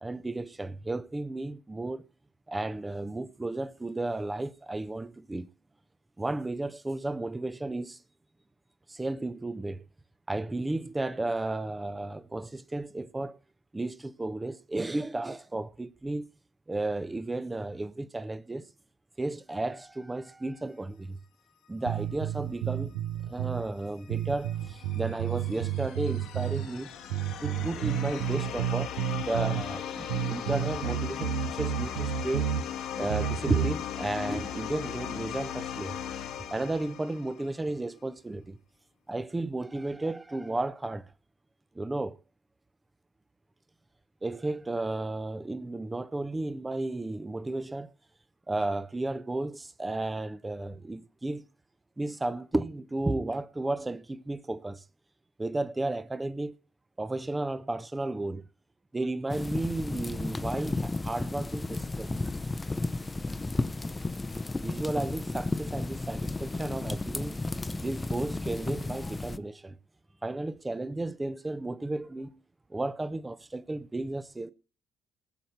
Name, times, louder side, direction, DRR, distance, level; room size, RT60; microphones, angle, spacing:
voice 1, 0.0-2.0 2.5-5.5 6.2-8.0 8.9-9.8 10.3-13.4 13.7-16.3 16.7-18.7 19.2-21.2 21.7-23.0 23.3-26.9 27.4-28.9 29.3-32.5 33.0-36.0 36.5-38.6 39.1-41.0 41.7-42.2 44.2-47.9 48.5-51.5 52.0-54.8 55.4-56.5 57.0-58.4 58.9-62.2 62.8-62.9 64.6-67.4 67.8-69.8 70.2-72.4 72.7-74.5, right 2 dB, 20° right, 0.8 m, -33 dB
sound 1, 21.8-23.7 24.1-26.7 27.1-29.7 30.1-32.7 33.1-33.8, right 10 dB, 75° right, 0.8 m, -31 dB
sound 2, 23.8-37.6, left 9 dB, 65° left, 1.3 m, -38 dB
sound 3, 59.3-69.4, left 2 dB, 20° left, 0.8 m, -33 dB
19.5 x 7.9 x 4.4 m
hypercardioid pair, 45°, 0 cm